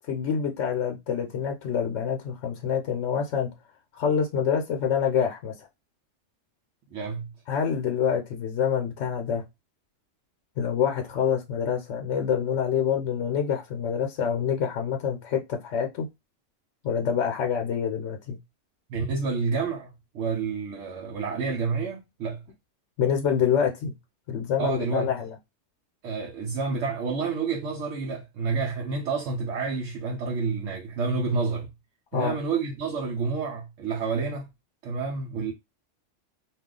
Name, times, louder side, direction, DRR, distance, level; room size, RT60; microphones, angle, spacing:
voice 1, 0.1-3.5 3.9-5.7 7.5-9.4 10.6-16.1 16.8-18.4 23.0-23.9 24.3-25.3 32.1-32.3, left 7 dB, 70° left, 0.9 m, -26 dB
voice 2, 6.9-7.3 18.9-22.4 24.6-25.1 26.0-31.7 32.1-34.5 34.8-35.5, right 4 dB, 80° right, 0.9 m, -29 dB
2.3 x 2.3 x 3.6 m
omnidirectional pair, 1.3 m